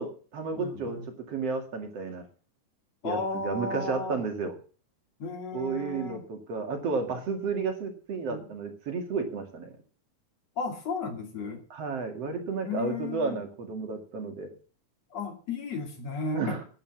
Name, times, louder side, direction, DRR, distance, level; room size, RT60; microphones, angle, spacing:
voice 1, 0.0-1.0 1.3-2.2 3.0-3.2 3.4-4.6 5.5-9.7 11.7-14.5 16.3-16.6, right 4 dB, 55° right, 4 dB, 3.1 m, -32 dB
voice 2, 0.5-1.1 3.0-4.2 5.2-6.2 8.3-8.5 10.6-11.6 12.6-13.4 15.1-16.6, left 3 dB, 60° left, 4 dB, 3.7 m, -34 dB
11.0 x 9.2 x 7.4 m, 0.39 s
omnidirectional pair, 3.5 m